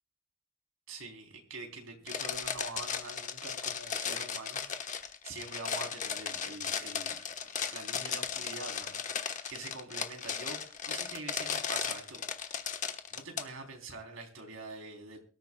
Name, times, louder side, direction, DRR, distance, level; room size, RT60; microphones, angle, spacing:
voice 1, 0.9-12.7 13.1-15.2, right 3 dB, 85° right, 3 dB, 3.5 m, -45 dB
sound 1, 2.1-13.4, left 7 dB, 35° left, 1.2 m, -36 dB
23.5 x 13.0 x 2.3 m, 0.38 s
head